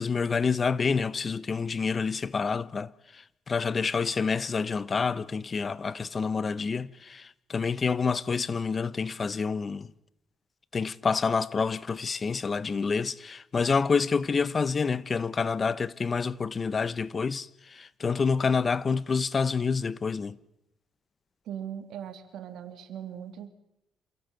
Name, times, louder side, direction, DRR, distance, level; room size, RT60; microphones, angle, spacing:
voice 1, 0.0-9.9 10.7-20.4, left 5 dB, 35° left, 0.9 m, -28 dB
voice 2, 21.4-23.5, right 9 dB, 80° right, 3.0 m, -39 dB
28.0 x 16.5 x 7.9 m
cardioid pair, 90°, 0 cm